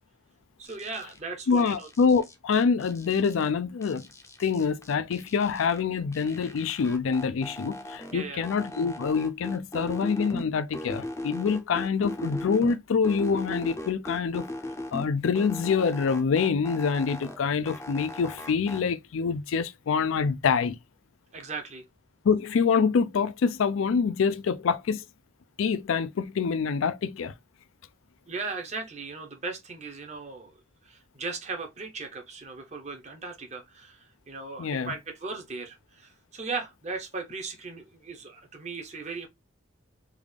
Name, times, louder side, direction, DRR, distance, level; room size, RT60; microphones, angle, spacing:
voice 1, 0.6-1.9 8.1-8.4 21.3-21.8 28.3-30.5 30.8-39.3, right 4 dB, 35° right, 0.7 m, -37 dB
sound 1, 0.7-1.2 1.5-3.5 3.8-5.8 6.1-8.1 8.4-10.4 10.7-12.8 13.0-15.1 15.3-17.4 17.7-18.8, left 1 dB, 15° left, 0.5 m, -38 dB
voice 2, 1.5-4.0 4.4-14.5 14.9-20.8 22.2-25.0 25.6-27.3 34.6-34.9, left 5 dB, 90° left, 0.4 m, -26 dB
3.5 x 2.4 x 3.3 m
head